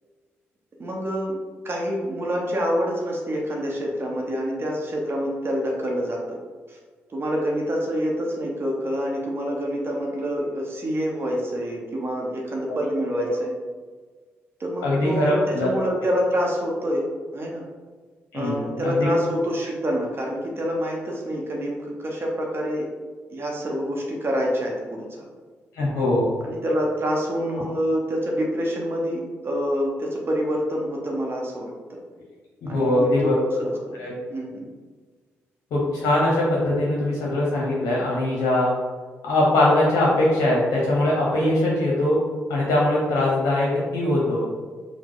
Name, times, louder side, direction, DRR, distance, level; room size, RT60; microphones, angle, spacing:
voice 1, 0.8-1.4 1.6-6.4 6.7-6.8 7.1-13.5 14.6-17.0 17.3-17.6 18.3-22.9 23.3-25.2 26.4-32.0 32.7-33.7 34.3-34.7, equal, 45° right, -1 dB, 0.7 m, -27 dB
voice 2, 14.8-15.7 18.3-19.1 25.8-26.3 32.6-33.4 34.0-34.2 35.7-38.7 39.2-42.2 42.5-44.5, left 1 dB, 75° left, -4 dB, 0.7 m, -21 dB
3.0 x 2.0 x 3.6 m, 1.4 s
supercardioid pair, 50°, 6 cm